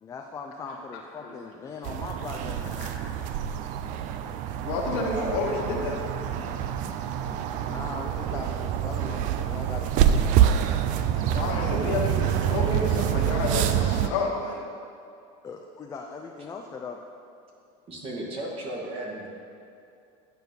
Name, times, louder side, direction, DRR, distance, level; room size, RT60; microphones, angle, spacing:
voice 1, 0.0-3.0 7.6-10.4 15.4-17.1, left 4 dB, 20° left, 2 dB, 0.5 m, -39 dB
voice 2, 0.7-1.3 2.8-3.1 4.6-6.0 11.0-14.6, left 4 dB, 65° left, 0 dB, 1.4 m, -31 dB
sound 1, 1.8-14.1, right 10 dB, 50° right, 0.5 m, -26 dB
voice 3, 4.9-5.4 6.3-6.6 17.9-19.3, right 2 dB, 35° right, -2 dB, 1.7 m, -35 dB
9.9 x 4.5 x 5.3 m, 2.5 s
supercardioid pair, 125°, 16 cm